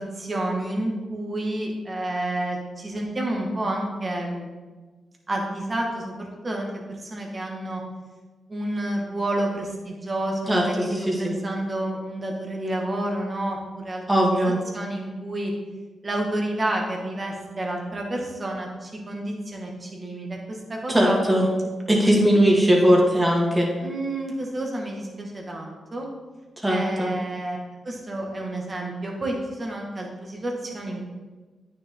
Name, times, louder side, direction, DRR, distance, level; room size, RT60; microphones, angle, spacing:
voice 1, 0.0-4.5 5.3-6.8 7.1-7.8 8.5-10.9 11.2-14.0 14.7-15.5 16.0-21.2 22.4-22.6 23.8-26.1 26.7-27.6 27.9-31.1, right 1 dB, 40° right, 0 dB, 2.2 m, -30 dB
voice 2, 10.5-11.3 14.1-14.6 20.9-21.5 21.9-23.7 26.6-27.1, equal, 15° right, -2 dB, 2.5 m, -19 dB
9.3 x 6.5 x 4.0 m, 1.3 s
cardioid pair, 55°, 0 cm